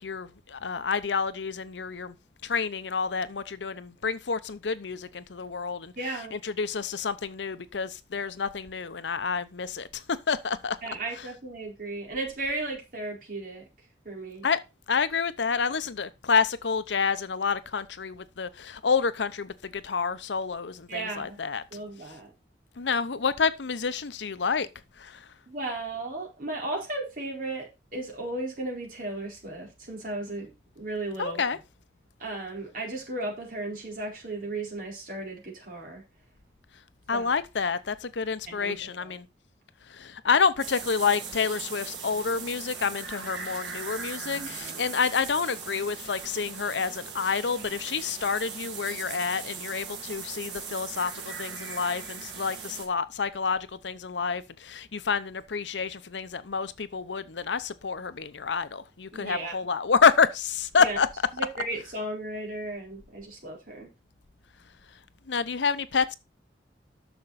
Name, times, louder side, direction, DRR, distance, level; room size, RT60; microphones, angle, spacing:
voice 1, 0.0-2.1 2.4-5.9 6.3-10.0 10.3-10.8 14.4-14.6 14.9-21.6 22.8-24.7 25.0-25.2 31.2-31.6 37.1-39.3 39.9-61.1 65.3-66.1, left 5 dB, 85° left, 0.7 m, -28 dB
voice 2, 6.0-6.4 10.8-13.6 14.0-14.4 20.9-21.4 21.7-22.3 25.5-27.7 27.9-30.5 30.8-31.4 32.2-36.0 37.1-37.3 38.5-39.1 44.4-44.5 59.1-59.5 60.8-61.0 61.3-63.9, right 2 dB, 50° right, 4.3 m, -35 dB
sound 1, 40.6-52.9, right 6 dB, 85° right, 2.3 m, -39 dB
10.0 x 6.6 x 4.1 m
head